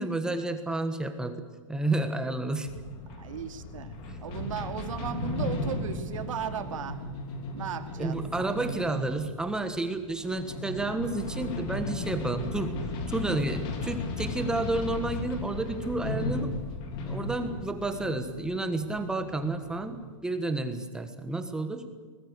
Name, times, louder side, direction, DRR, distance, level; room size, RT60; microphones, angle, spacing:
voice 1, 0.0-1.3 1.7-2.7 4.1-4.2 8.0-12.7 13.1-16.5 17.1-21.8, right 2 dB, 5° right, 7 dB, 1.4 m, -31 dB
sound 1, 2.7-20.2, left 2 dB, 30° left, 3.1 m, -36 dB
voice 2, 3.2-3.9 4.2-7.1 7.5-8.2, right 8 dB, 75° right, 7 dB, 2.7 m, -36 dB
23.0 x 20.0 x 8.2 m, 1.4 s
hypercardioid pair, 160°, 17 cm